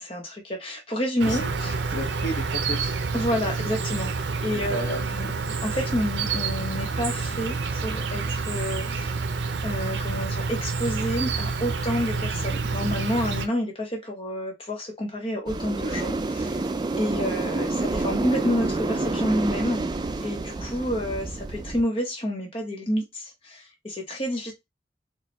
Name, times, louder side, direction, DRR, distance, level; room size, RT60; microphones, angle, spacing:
voice 1, 0.0-1.8 3.1-4.1 4.4-9.2 9.6-16.6 17.0-19.9 20.2-24.5, equal, 30° left, 0.9 m, -29 dB
Insect, 1.2-13.5, right 4 dB, 90° right, 0.5 m, -28 dB
voice 2, 1.9-2.9 4.5-5.1, equal, 80° left, 1.2 m, -33 dB
sound 1, 15.5-21.8, right 2 dB, 25° right, 0.3 m, -28 dB
4.2 x 2.2 x 3.0 m
head